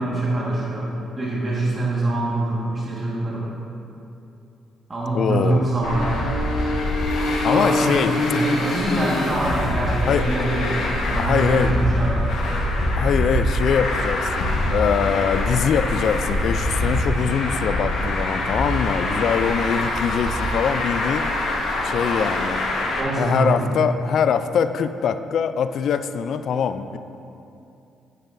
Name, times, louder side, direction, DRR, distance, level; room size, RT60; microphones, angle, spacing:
voice 1, 0.0-3.5 4.9-6.2 7.4-12.6 19.0-19.2 23.0-23.7, right 2 dB, 30° right, -6 dB, 1.6 m, -24 dB
voice 2, 5.1-5.6 7.4-8.1 10.1-10.2 11.2-11.7 13.0-21.4 21.8-22.6 23.2-27.0, left 7 dB, 65° left, 11 dB, 0.3 m, -23 dB
Traffic noise roadway noise, 5.8-23.0, left 1 dB, 80° left, 1.2 m, -24 dB
9.1 x 8.2 x 2.6 m, 2.7 s
cardioid pair, 90°, 0 cm